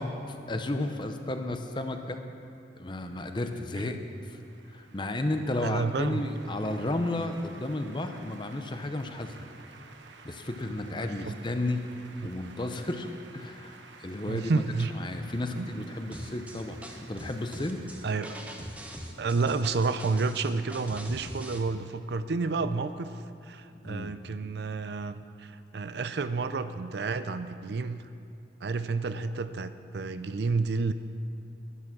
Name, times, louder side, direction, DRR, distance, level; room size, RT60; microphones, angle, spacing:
voice 1, 0.0-2.2 2.8-4.4 4.7-9.5 10.2-11.9 12.2-14.6 14.9-17.8 23.8-24.1, left 1 dB, 25° left, 6 dB, 0.7 m, -33 dB
sound 1, 2.9-19.6, right 4 dB, 85° right, 1.0 m, -53 dB
voice 2, 5.6-6.3 11.0-11.4 14.3-14.9 15.6-15.7 18.0-18.4 19.2-23.1 23.4-28.0 28.6-30.9, right 4 dB, 65° right, 12 dB, 0.4 m, -30 dB
sound 2, 16.1-21.6, equal, 10° right, 0.9 m, -43 dB
11.0 x 11.0 x 6.0 m, 2.5 s
head